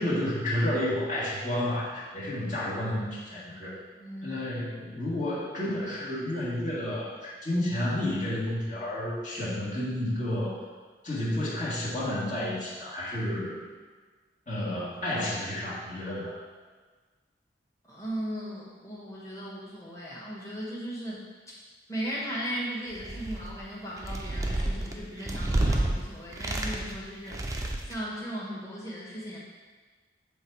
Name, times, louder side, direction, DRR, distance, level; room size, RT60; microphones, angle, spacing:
voice 1, 0.0-3.8 4.2-10.6 11.0-13.6 14.5-16.4, left 1 dB, 45° left, -8 dB, 1.6 m, -31 dB
voice 2, 3.9-4.4 17.9-21.5 21.9-27.4 27.8-29.4, equal, 15° left, -6 dB, 1.4 m, -37 dB
sound 1, 22.9-23.6 24.0-25.9 26.3-27.0 27.3-28.0, right 1 dB, 20° right, 0.5 m, -29 dB
7.7 x 3.5 x 4.6 m, 1.4 s
head